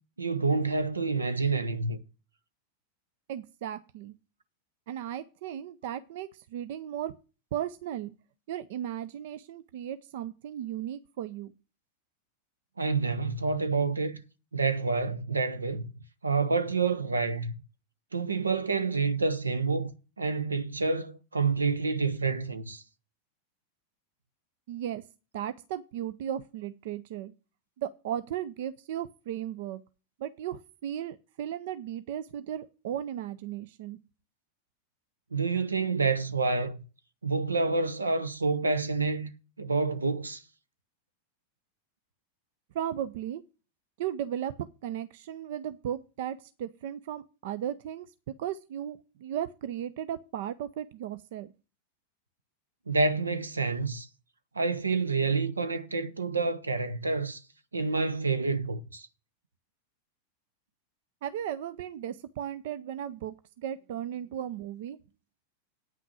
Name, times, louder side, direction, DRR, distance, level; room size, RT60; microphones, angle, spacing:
voice 1, 0.2-2.0 12.8-14.2 14.5-15.9 16.2-17.5 18.1-19.9 20.2-22.8 35.3-36.8 37.2-39.3 39.6-40.4 52.9-54.1 54.5-57.4 57.7-59.1, right 4 dB, 75° right, 0.8 m, -28 dB
voice 2, 3.3-4.1 4.9-7.1 7.5-8.1 8.5-11.5 24.7-25.0 25.3-27.3 27.8-29.8 30.2-34.0 42.7-43.4 44.0-51.5 61.2-65.0, right 10 dB, 55° right, 0.5 m, -36 dB
9.0 x 5.9 x 8.1 m
figure-of-eight pair, 90°, 0 cm